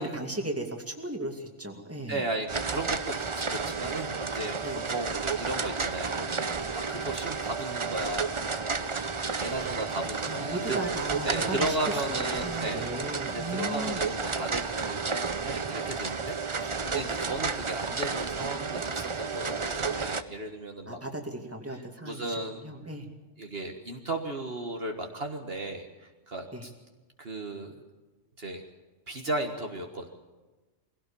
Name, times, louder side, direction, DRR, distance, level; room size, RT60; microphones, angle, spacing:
voice 1, 0.0-2.3 4.6-4.8 9.4-9.7 10.2-14.0 20.9-23.1 26.5-26.6, right 1 dB, 10° right, 2 dB, 2.4 m, -36 dB
voice 2, 2.1-4.6 4.9-8.2 8.8-10.8 11.2-12.9 13.3-21.0 22.0-22.6 23.4-26.7 27.2-27.8 28.4-28.6 29.1-30.1, right 2 dB, 50° right, 3 dB, 1.8 m, -35 dB
sound 1, 2.5-20.2, right 4 dB, 30° right, 0.7 m, -32 dB
22.5 x 17.0 x 7.0 m, 1.2 s
omnidirectional pair, 1.3 m